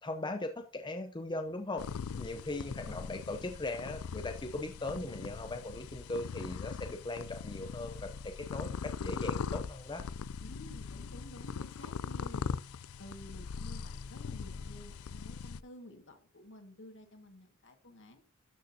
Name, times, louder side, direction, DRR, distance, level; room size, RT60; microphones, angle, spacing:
voice 1, 0.0-1.8 2.1-10.0, left 2 dB, 20° left, 5 dB, 0.7 m, -39 dB
sound 1, 1.8-15.6, left 6 dB, 85° left, 0.4 m, -40 dB
voice 2, 2.3-2.9 10.4-12.5 13.0-18.2, left 1 dB, 60° left, 5 dB, 1.9 m, -52 dB
13.0 x 6.4 x 2.8 m, 0.38 s
head